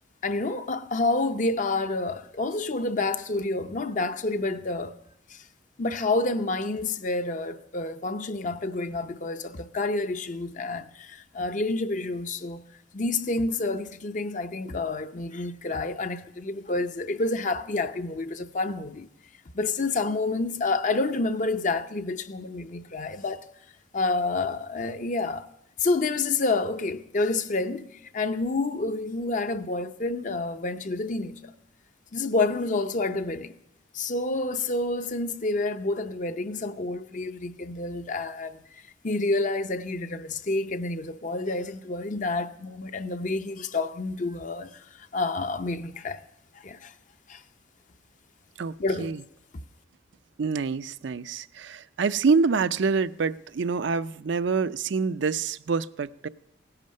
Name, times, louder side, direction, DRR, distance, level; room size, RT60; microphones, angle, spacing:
voice 1, 0.2-4.9 5.3-5.4 5.8-12.6 12.9-19.1 19.5-23.5 23.9-25.5 25.8-31.3 32.1-33.5 33.9-38.6 39.0-46.2 46.6-46.9 47.3-47.4 48.8-49.1, left 3 dB, 40° left, 0.6 m, -29 dB
voice 2, 48.6-49.2 50.4-56.3, right 5 dB, 65° right, 0.4 m, -26 dB
17.0 x 11.0 x 6.4 m
head